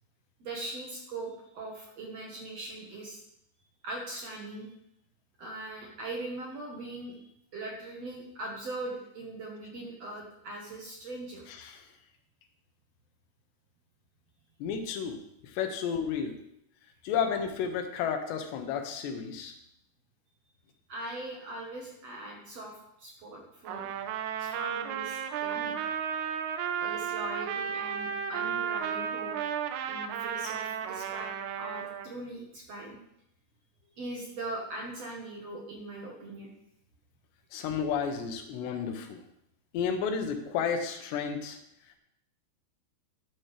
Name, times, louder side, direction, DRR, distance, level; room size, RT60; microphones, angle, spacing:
voice 1, 0.4-3.2 3.8-4.7 5.4-11.5 20.9-23.9 24.4-25.8 26.8-29.3 29.9-33.0 34.0-36.5, right 2 dB, 60° right, -1 dB, 1.9 m, -40 dB
voice 2, 11.5-11.9 14.6-16.3 17.0-19.6 37.5-39.2 39.7-41.6, left 7 dB, 90° left, 6 dB, 3.2 m, -32 dB
Trumpet, 23.7-32.1, right 8 dB, 90° right, 2.8 m, -34 dB
13.0 x 9.2 x 3.4 m, 0.78 s
omnidirectional pair, 4.8 m